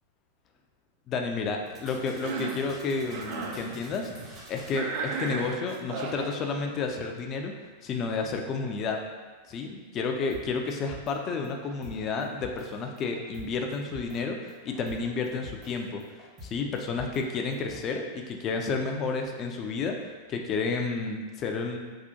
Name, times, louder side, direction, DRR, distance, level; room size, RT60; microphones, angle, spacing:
voice 1, 1.1-4.1 4.5-7.5 7.8-9.0 9.5-21.8, left 4 dB, 30° left, 3 dB, 0.3 m, -31 dB
sound 1, 1.7-4.8 10.3-10.4 10.7-11.1 11.4-12.7 13.0-13.5 13.7-14.2 14.5-15.7 16.0-17.2 17.5-17.7, left 1 dB, 30° right, 0.8 m, -46 dB
Cough, 2.1-2.7 3.1-3.6 4.7-6.3, right 4 dB, 50° right, 0.4 m, -34 dB
3.6 x 2.4 x 2.7 m, 1.4 s
figure-of-eight pair, 90°, 0 cm